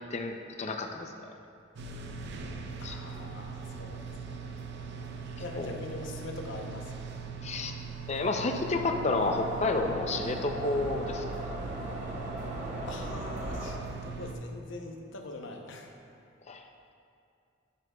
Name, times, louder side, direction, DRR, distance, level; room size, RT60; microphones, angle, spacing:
voice 1, 0.1-1.3 2.8-3.0 5.6-5.7 7.4-7.7 8.1-11.2 16.5-16.6, left 3 dB, 35° left, 5 dB, 0.5 m, -30 dB
sound 1, 1.8-14.3, right 5 dB, 60° right, 0.6 m, -41 dB
voice 2, 2.8-4.5 5.4-7.2 12.9-16.0, left 2 dB, 70° left, 3 dB, 0.8 m, -43 dB
sound 2, 8.6-13.7, right 1 dB, 35° right, 1.0 m, -38 dB
9.8 x 7.9 x 2.3 m, 2.4 s
head